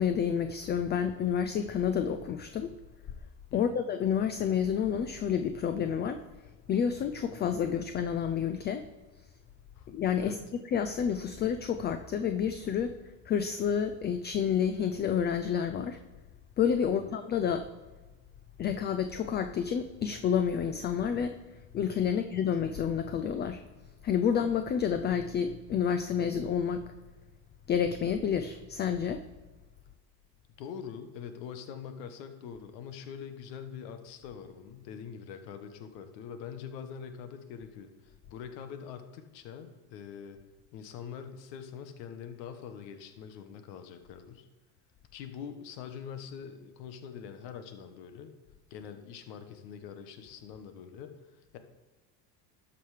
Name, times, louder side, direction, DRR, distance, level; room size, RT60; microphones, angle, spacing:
voice 1, 0.0-2.7 3.5-6.2 6.7-8.9 9.9-10.4 10.7-13.0 13.3-16.0 16.6-17.7 18.6-21.4 21.7-23.6 24.0-26.8 27.7-29.2, left 8 dB, 25° left, 9 dB, 0.3 m, -29 dB
voice 2, 30.6-40.4 40.7-44.4 45.1-48.3 48.7-51.6, left 7 dB, 85° left, 8 dB, 1.3 m, -44 dB
12.0 x 5.8 x 4.9 m, 1.2 s
supercardioid pair, 115°, 49 cm